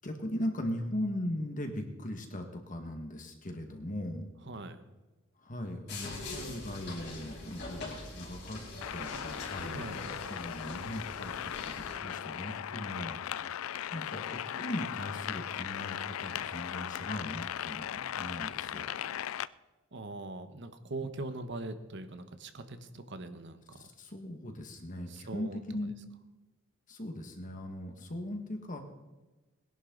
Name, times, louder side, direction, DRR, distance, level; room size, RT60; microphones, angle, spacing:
voice 1, 0.0-4.3 5.4-8.6 8.9-9.9 10.3-11.3 11.6-13.3 13.9-18.9 23.8-25.9 26.9-28.8, left 1 dB, 40° left, 4 dB, 1.9 m, -39 dB
voice 2, 4.4-4.8 9.7-10.2 19.9-23.9 25.1-25.9, right 2 dB, 60° right, 9 dB, 1.2 m, -42 dB
sound 1, 5.9-12.0, left 2 dB, 55° left, 4.2 m, -43 dB
sound 2, 8.8-19.5, left 10 dB, 90° left, 0.4 m, -38 dB
20.5 x 11.0 x 4.0 m, 1.1 s
head